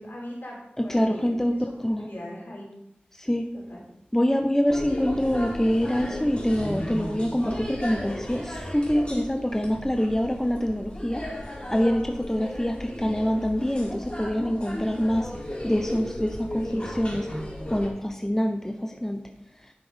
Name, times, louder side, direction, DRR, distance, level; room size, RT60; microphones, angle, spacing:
voice 1, 0.0-1.6 1.9-2.7 3.5-3.8 16.6-16.9, left 1 dB, 65° left, -4 dB, 4.3 m, -40 dB
voice 2, 0.8-2.1 3.2-3.5 4.1-11.3 11.7-15.3 15.6-17.3 17.7-19.2, equal, 10° left, 5 dB, 0.7 m, -25 dB
sound 1, 4.7-17.9, left 1 dB, 30° left, 3.0 m, -35 dB
10.5 x 6.0 x 5.0 m, 0.81 s
wide cardioid pair, 65°, 4 cm